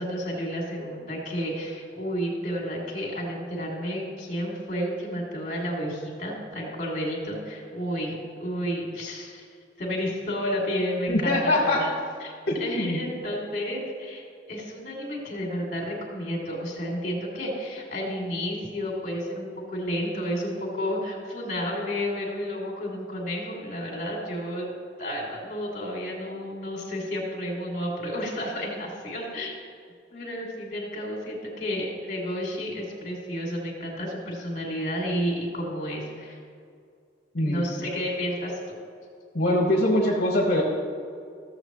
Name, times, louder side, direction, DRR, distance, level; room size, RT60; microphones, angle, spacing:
voice 1, 0.0-9.5 9.8-11.9 12.2-12.3 12.6-24.7 25.0-29.5 30.1-36.4 37.4-38.6, equal, 45° left, -2 dB, 2.5 m, -31 dB
voice 2, 11.1-11.8 12.5-13.0 37.3-37.6 39.3-40.6, left 1 dB, 60° left, -4 dB, 1.3 m, -23 dB
14.5 x 7.4 x 3.1 m, 2.3 s
head